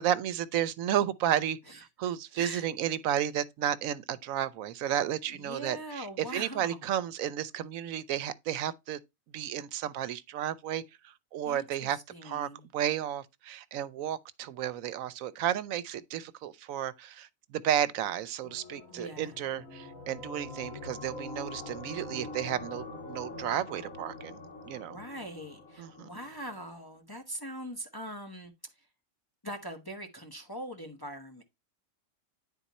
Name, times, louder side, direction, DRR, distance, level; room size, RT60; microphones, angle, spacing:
voice 1, 0.0-9.0 9.3-24.4 24.6-25.0 25.8-26.1, right 10 dB, 90° right, 1.1 m, -32 dB
voice 2, 1.7-2.7 5.3-6.9 11.4-12.6 18.9-19.3 24.7-28.5 29.4-31.4, equal, 20° left, 1.0 m, -42 dB
sound 1, 18.4-26.7, left 2 dB, 85° left, 2.3 m, -44 dB
10.0 x 4.2 x 4.1 m
omnidirectional pair, 1.4 m